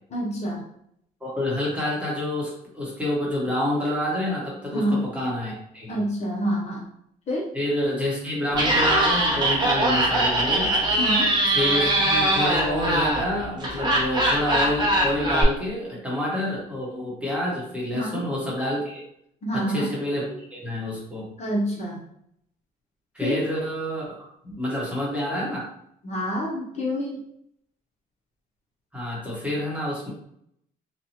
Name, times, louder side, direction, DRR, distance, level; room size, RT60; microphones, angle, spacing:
voice 1, 0.1-0.7 4.7-5.0 5.9-6.8 7.3-7.5 11.0-11.3 17.9-18.2 19.4-19.9 21.4-22.0 23.2-23.4 26.0-27.2, equal, 40° left, -2 dB, 0.7 m, -27 dB
voice 2, 1.2-6.0 7.5-10.8 11.5-19.0 19.5-21.3 23.1-25.7 28.9-30.1, left 1 dB, 5° right, -6 dB, 1.2 m, -28 dB
Laughter, 8.5-15.4, right 1 dB, 25° right, 0.8 m, -22 dB
2.8 x 2.3 x 2.9 m, 0.72 s
cardioid pair, 110°, 17 cm